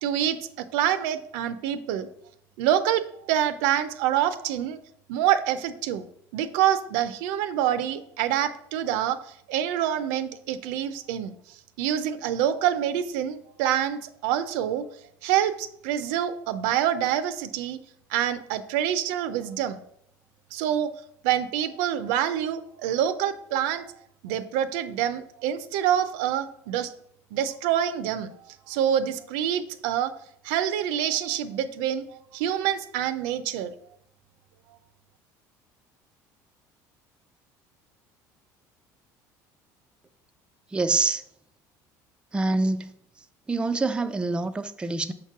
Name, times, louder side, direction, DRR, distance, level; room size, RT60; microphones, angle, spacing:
voice 1, 0.0-0.4 0.7-2.1 2.6-3.0 3.3-4.8 5.1-6.1 6.3-9.2 9.5-11.3 11.8-14.8 15.2-17.8 18.1-19.8 20.5-20.9 21.2-23.8 24.2-26.9 27.3-28.3 28.7-30.1 30.5-32.0 32.3-33.7, right 10 dB, 85° right, 0.5 m, -26 dB
voice 2, 40.7-41.2 42.3-42.9 43.5-45.1, right 3 dB, 10° right, 0.4 m, -25 dB
6.4 x 3.0 x 5.8 m
cardioid pair, 110°, 8 cm